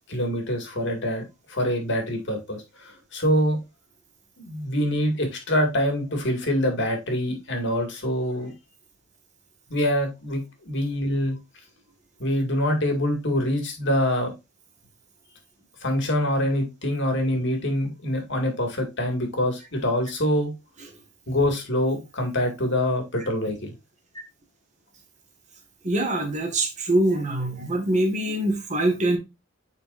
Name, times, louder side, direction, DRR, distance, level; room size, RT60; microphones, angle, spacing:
voice 1, 0.1-1.2 1.5-3.6 4.4-8.5 9.7-11.4 12.2-14.3 15.8-20.5 21.3-23.7, left 1 dB, 60° left, 2.1 m, -25 dB
voice 2, 25.8-29.2, right 1 dB, 35° right, 1.7 m, -24 dB
9.4 x 4.4 x 2.5 m
head